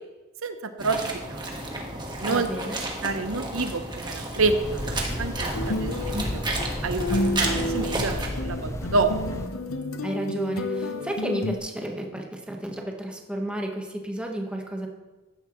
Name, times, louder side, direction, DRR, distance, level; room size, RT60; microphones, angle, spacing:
voice 1, 0.4-1.5 2.2-2.5 3.0-6.4 6.8-9.1, right 3 dB, 85° right, 8 dB, 0.8 m, -28 dB
sound 1, 0.8-8.3, right 2 dB, 20° right, 1.5 m, -32 dB
voice 2, 2.3-2.8 10.0-14.9, right 1 dB, 5° right, 1 dB, 1.2 m, -32 dB
sound 2, 4.4-9.5, left 1 dB, 15° left, 0.7 m, -33 dB
sound 3, 5.5-11.6, left 1 dB, 85° left, 0.9 m, -30 dB
15.0 x 11.5 x 3.1 m, 1.2 s
head